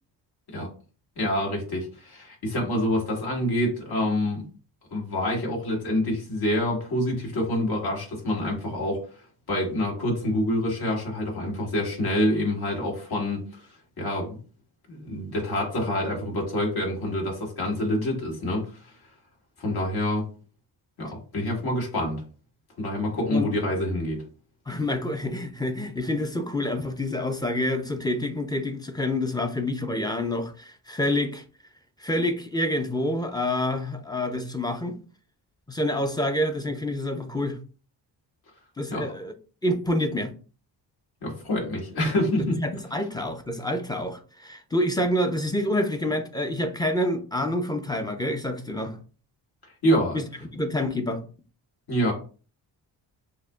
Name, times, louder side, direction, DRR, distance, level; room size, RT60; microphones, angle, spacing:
voice 1, 1.2-4.4 4.9-9.1 9.5-13.6 14.0-14.4 14.9-18.7 19.6-20.3 21.0-22.2 22.8-24.2 38.9-39.1 41.2-42.6 49.8-50.2 51.9-52.1, left 1 dB, 55° left, 1.8 m, -26 dB
voice 2, 24.7-31.4 32.0-35.0 35.7-37.6 38.8-39.3 39.6-40.3 42.6-49.0 50.1-50.2 50.5-51.2, left 1 dB, 10° left, 0.5 m, -27 dB
6.2 x 2.1 x 2.3 m
cardioid pair, 85°, 44 cm